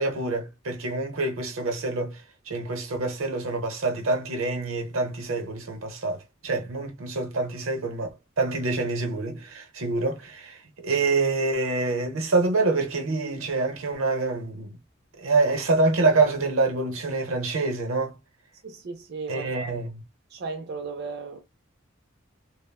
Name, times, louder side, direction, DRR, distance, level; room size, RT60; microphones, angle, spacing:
voice 1, 0.0-8.1 8.4-14.8 15.2-18.2 19.3-20.0, right 3 dB, 85° right, 0.8 m, -26 dB
voice 2, 18.6-19.7 20.3-21.4, right 4 dB, 55° right, 0.4 m, -35 dB
3.3 x 2.0 x 2.3 m
head